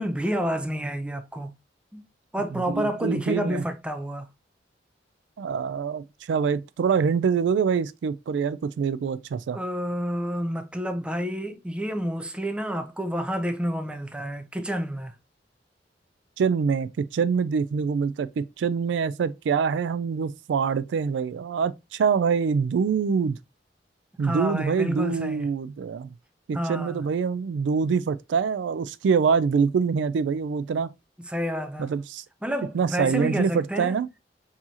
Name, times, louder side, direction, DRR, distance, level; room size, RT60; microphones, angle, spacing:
voice 1, 0.0-1.6 1.9-2.1 2.3-4.3 9.5-15.2 24.2-25.5 26.5-27.0 31.2-32.0 32.4-34.0, equal, 5° right, 0.4 m, -29 dB
voice 2, 2.5-3.6 5.4-9.6 16.4-23.4 24.2-26.1 26.5-30.9 31.8-32.2 32.7-34.1, right 6 dB, 90° right, 0.3 m, -25 dB
4.6 x 2.8 x 2.7 m
head